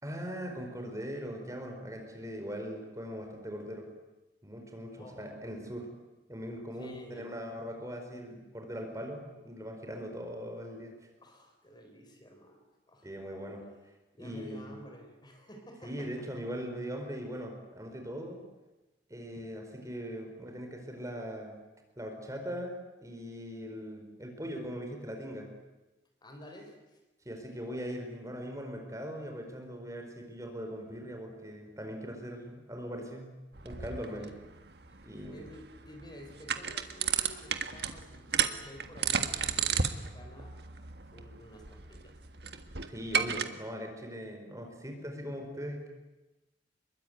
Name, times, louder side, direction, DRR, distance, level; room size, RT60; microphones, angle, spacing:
voice 1, 0.0-3.9 4.4-5.9 6.3-10.9 13.0-13.6 14.2-14.8 15.8-18.4 19.1-21.6 22.0-22.7 23.0-25.5 27.2-33.4 33.6-34.3 35.0-35.4 42.9-45.9, equal, 15° right, 3 dB, 4.5 m, -40 dB
voice 2, 6.8-7.3 11.2-13.1 14.2-16.3 20.3-20.4 26.2-27.0 34.2-34.5 34.9-40.6 41.0-42.2, equal, 25° left, 4 dB, 4.4 m, -51 dB
sound 1, 33.6-43.4, right 7 dB, 60° right, 1.7 m, -34 dB
26.0 x 22.5 x 9.4 m, 1.1 s
head